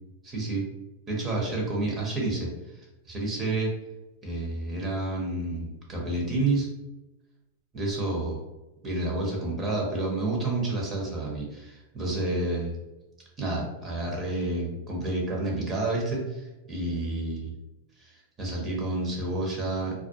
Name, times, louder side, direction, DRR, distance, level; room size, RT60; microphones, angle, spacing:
voice 1, 0.2-0.6 1.1-2.5 2.8-3.7 4.2-6.7 7.7-8.4 8.8-12.7 13.4-17.5 18.0-19.9, right 2 dB, 25° right, -2 dB, 0.7 m, -29 dB
2.3 x 2.0 x 2.7 m, 1.0 s
hypercardioid pair, 125°, 0 cm